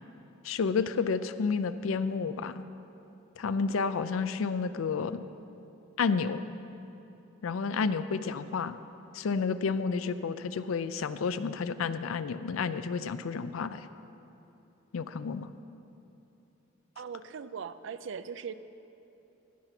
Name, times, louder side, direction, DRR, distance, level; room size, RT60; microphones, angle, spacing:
voice 1, 0.4-2.6 3.4-5.2 6.0-6.4 7.4-8.8 9.1-13.9 14.9-15.5, left 5 dB, 75° left, 13 dB, 0.4 m, -30 dB
voice 2, 17.0-18.5, right 6 dB, 60° right, 13 dB, 0.4 m, -39 dB
15.5 x 5.8 x 5.9 m, 3.0 s
head